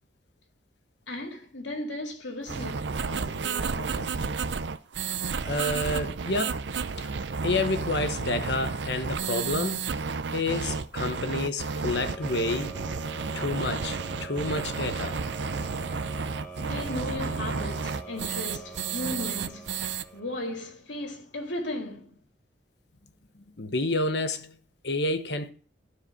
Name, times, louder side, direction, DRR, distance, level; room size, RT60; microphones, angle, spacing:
voice 1, 1.1-4.3 16.6-19.7 20.1-22.2, left 1 dB, 85° left, 2.2 m, -36 dB
sound 1, 2.5-20.0, right 5 dB, 70° right, 0.6 m, -32 dB
voice 2, 5.5-6.7 7.0-7.1 7.4-9.9 10.3-12.8 13.3-15.2 23.6-24.6 24.8-25.5, left 2 dB, 65° left, 1.1 m, -29 dB
sound 2, 11.9-20.8, right 3 dB, 5° left, 0.9 m, -44 dB
13.0 x 4.9 x 6.4 m
head